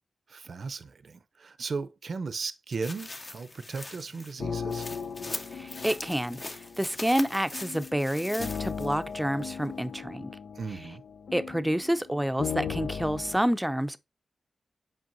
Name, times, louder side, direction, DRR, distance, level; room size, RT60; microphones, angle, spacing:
voice 1, 0.3-4.9 10.6-11.0, right 4 dB, 65° right, 0.6 m, -36 dB
sound 1, 2.7-9.0 9.4-9.5, left 2 dB, 40° left, 1.1 m, -41 dB
sound 2, 4.4-13.4, left 6 dB, 75° left, 0.6 m, -37 dB
voice 2, 5.5-10.3 11.3-14.0, equal, 5° right, 0.6 m, -28 dB
7.6 x 5.3 x 2.6 m
cardioid pair, 60°, 0 cm